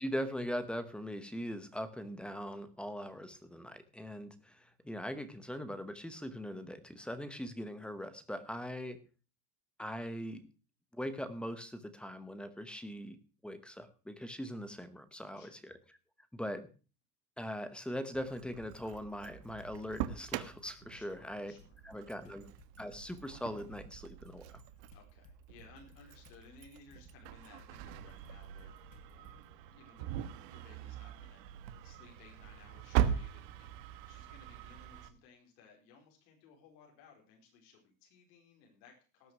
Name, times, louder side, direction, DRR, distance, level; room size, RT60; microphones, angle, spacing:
voice 1, 0.0-9.0 9.8-10.5 10.9-13.2 13.4-15.7 16.3-16.6 17.4-21.5 21.8-22.5 22.8-24.6, equal, ahead, 11 dB, 0.8 m, -41 dB
Engine starting, 18.1-35.1, right 10 dB, 75° right, 1.6 m, -41 dB
sound 1, 18.9-19.8 20.2-29.4, left 5 dB, 65° left, 4.4 m, -62 dB
voice 2, 20.9-21.8 22.1-22.2 24.6-31.4 31.8-39.3, left 5 dB, 85° left, 0 dB, 4.8 m, -60 dB
18.5 x 6.3 x 6.1 m, 0.36 s
cardioid pair, 170°, 50 cm